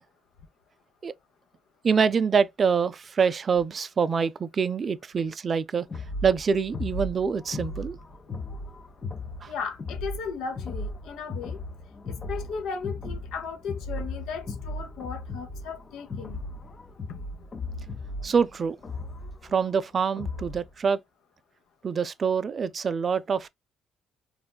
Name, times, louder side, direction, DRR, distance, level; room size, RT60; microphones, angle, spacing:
voice 1, 1.8-8.0 9.4-9.5 18.2-18.8 19.5-21.0 21.8-23.5, right 6 dB, 45° right, 0.3 m, -25 dB
sound 1, 5.9-20.7, left 2 dB, 40° left, 0.6 m, -36 dB
voice 2, 9.5-11.6 12.1-16.4 17.1-17.3, left 5 dB, 75° left, 0.7 m, -36 dB
4.1 x 2.2 x 2.2 m
supercardioid pair, 65°, 0 cm